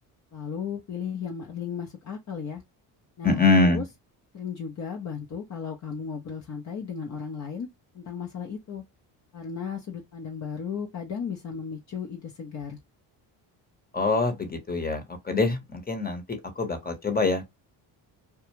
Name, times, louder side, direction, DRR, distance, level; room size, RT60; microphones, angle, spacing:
voice 1, 0.3-2.6 3.2-3.8 4.3-7.7 7.9-8.8 9.3-12.8, left 6 dB, 35° left, 0.7 m, -35 dB
voice 2, 3.2-3.8 13.9-17.5, left 3 dB, 20° left, 1.0 m, -24 dB
2.4 x 2.3 x 3.0 m
supercardioid pair, 60°, 48 cm